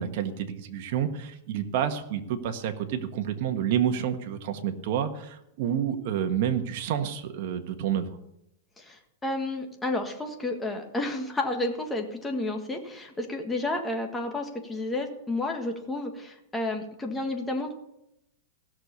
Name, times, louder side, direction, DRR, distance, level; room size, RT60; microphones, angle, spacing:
voice 1, 0.0-8.2, right 9 dB, 50° right, 6 dB, 1.5 m, -29 dB
voice 2, 8.8-17.7, left 2 dB, 10° left, 3 dB, 1.6 m, -31 dB
16.0 x 6.7 x 6.9 m, 0.83 s
supercardioid pair, 155°, 0 cm